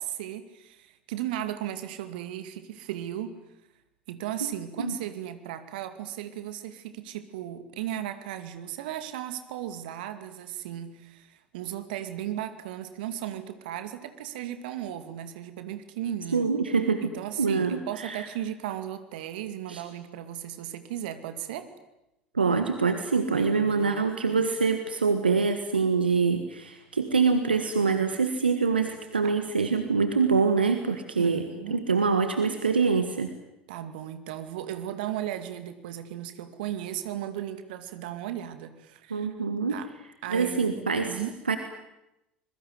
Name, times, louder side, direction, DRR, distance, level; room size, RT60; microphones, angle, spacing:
voice 1, 0.0-3.4 4.1-16.5 17.0-21.7 23.3-24.5 29.2-29.4 31.2-31.8 33.7-39.3 39.7-39.9 40.2-41.4, right 11 dB, 70° right, 10 dB, 2.3 m, -36 dB
voice 2, 16.3-17.1 17.4-18.3 19.7-19.8 22.3-33.3 39.1-39.8 40.3-41.2 41.5-41.6, right 5 dB, 85° right, 8 dB, 1.5 m, -25 dB
26.5 x 22.0 x 9.6 m, 0.90 s
figure-of-eight pair, 65°, 5 cm